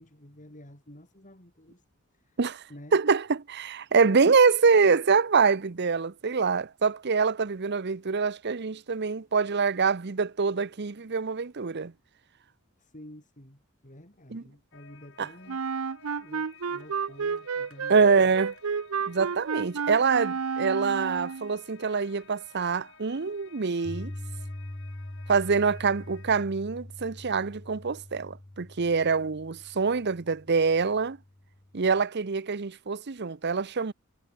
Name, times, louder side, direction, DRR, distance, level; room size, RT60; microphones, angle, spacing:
voice 1, 0.0-1.8 2.1-2.4 2.7-3.0 12.8-15.7 16.2-18.4, left 1 dB, 35° left, 7.2 m, -50 dB
voice 2, 2.9-11.9 14.3-14.4 15.2-15.3 17.9-18.5 19.1-24.1 25.3-31.2 31.7-33.9, right 5 dB, 55° right, 0.8 m, -25 dB
sound 1, 14.7-26.4, left 6 dB, 60° left, 6.4 m, -55 dB
Wind instrument woodwind instrument, 15.5-21.5, right 6 dB, 85° right, 0.7 m, -31 dB
Piano, 23.8-31.9, left 1 dB, 20° left, 0.7 m, -43 dB
head